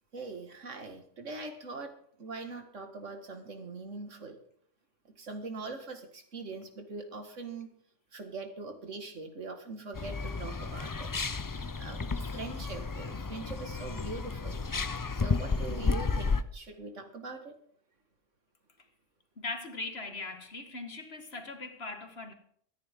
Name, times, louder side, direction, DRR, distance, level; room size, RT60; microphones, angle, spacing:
voice 1, 0.1-4.4 5.2-7.7 8.1-11.1 11.8-14.6 15.1-17.6, right 3 dB, 85° right, 2.2 m, -42 dB
Gafarrons pardals i cotorretes - Aaron i Xavi, 9.9-16.4, left 4 dB, 35° left, 0.3 m, -32 dB
voice 2, 19.4-22.3, left 3 dB, 55° left, 2.0 m, -40 dB
24.0 x 10.0 x 3.7 m
omnidirectional pair, 1.2 m